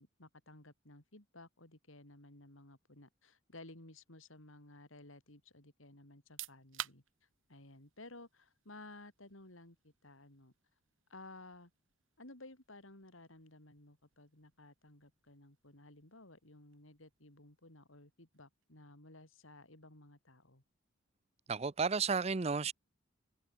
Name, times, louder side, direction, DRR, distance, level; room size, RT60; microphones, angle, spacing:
voice 1, 0.0-10.5 11.1-11.7 12.2-20.6, left 2 dB, 70° left, 4.2 m, -56 dB
sound 1, 6.1-18.8, right 11 dB, 70° right, 2.6 m, -55 dB
voice 2, 21.5-22.7, right 5 dB, 30° right, 0.5 m, -32 dB
head